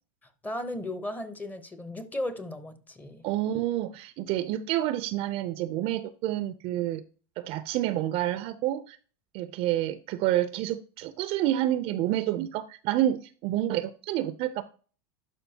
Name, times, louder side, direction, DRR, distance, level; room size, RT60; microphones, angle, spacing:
voice 1, 0.2-3.2, left 1 dB, 10° left, 0.8 m, -36 dB
voice 2, 3.2-7.0 7.4-9.0 9.3-14.6, right 13 dB, 50° right, 0.5 m, -28 dB
11.5 x 4.9 x 2.8 m
supercardioid pair, 130°, 13 cm